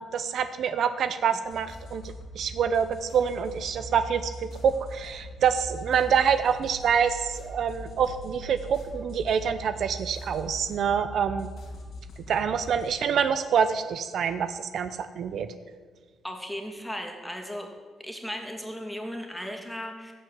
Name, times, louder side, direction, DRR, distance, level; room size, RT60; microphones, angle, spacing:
voice 1, 0.0-4.3 4.6-11.5 12.3-15.5, right 7 dB, 70° right, 10 dB, 0.7 m, -26 dB
sound 1, 1.4-12.9, equal, 75° left, 2.7 m, -42 dB
voice 2, 16.2-17.7 18.0-20.1, equal, 5° left, 2 dB, 2.5 m, -36 dB
15.5 x 5.5 x 9.2 m, 1.4 s
cardioid pair, 80°, 0 cm